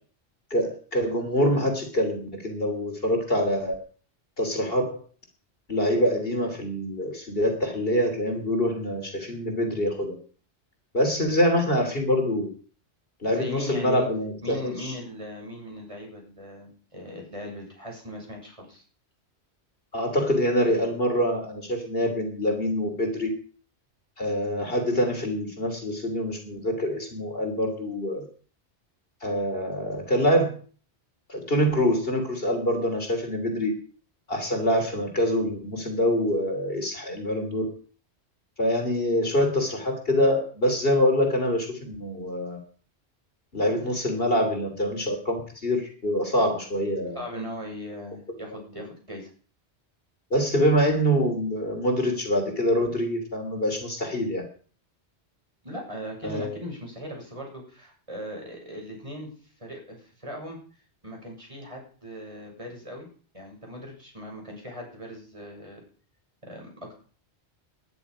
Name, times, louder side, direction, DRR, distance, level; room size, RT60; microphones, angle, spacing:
voice 1, 0.5-3.8 4.4-5.0 5.7-10.2 10.9-12.5 13.2-14.9 19.9-23.3 24.2-28.3 29.2-30.6 31.3-33.7 34.3-37.7 38.6-42.6 43.5-47.2 50.3-54.5 56.2-56.5, equal, 55° left, 4 dB, 3.4 m, -25 dB
voice 2, 13.3-14.1 14.4-18.8 47.2-49.3 55.6-59.3 59.6-60.6 61.0-63.1 63.3-65.8 66.4-66.9, equal, 30° right, 0 dB, 6.9 m, -39 dB
20.0 x 10.5 x 5.0 m, 0.42 s
omnidirectional pair, 1.2 m